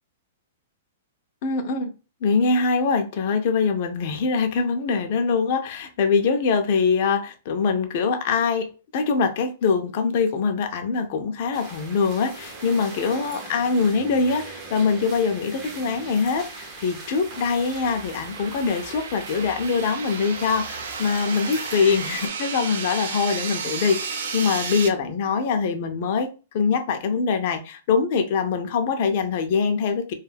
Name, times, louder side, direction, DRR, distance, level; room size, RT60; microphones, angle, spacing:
voice 1, 1.4-1.9 2.2-26.3 26.5-30.1, left 5 dB, 45° left, 0.5 m, -23 dB
sound 1, 11.5-22.3, right 3 dB, 25° right, 0.6 m, -40 dB
sound 2, 15.9-24.9, right 5 dB, 70° right, 0.5 m, -33 dB
2.5 x 2.3 x 3.3 m
hypercardioid pair, 160°, 0 cm